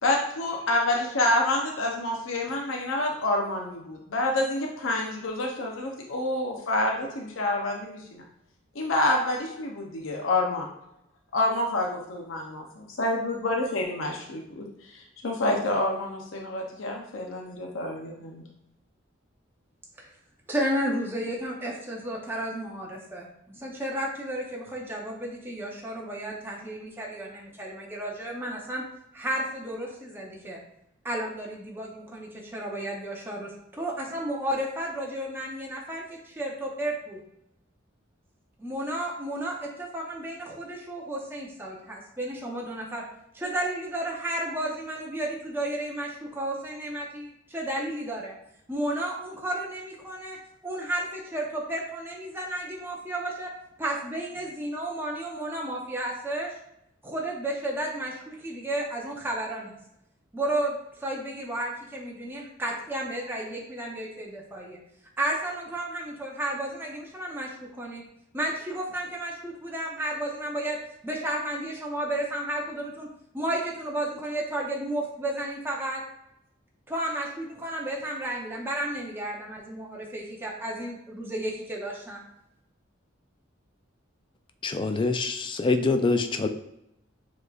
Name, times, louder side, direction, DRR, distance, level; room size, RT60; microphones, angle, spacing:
voice 1, 0.0-8.3 8.7-10.7 11.3-18.4, left 1 dB, 75° left, 0 dB, 0.6 m, -28 dB
voice 2, 20.5-28.8 29.1-30.6 31.0-37.2 38.6-43.0 43.3-48.3 48.7-50.4 50.6-53.5 53.8-56.5 57.0-59.8 60.3-64.8 65.2-68.0 68.3-70.8 71.0-73.1 73.3-76.0 76.9-82.2, right 1 dB, 10° right, -2 dB, 0.6 m, -32 dB
voice 3, 84.6-86.5, left 3 dB, 25° left, 7 dB, 0.3 m, -25 dB
6.8 x 3.1 x 2.3 m, 0.81 s
head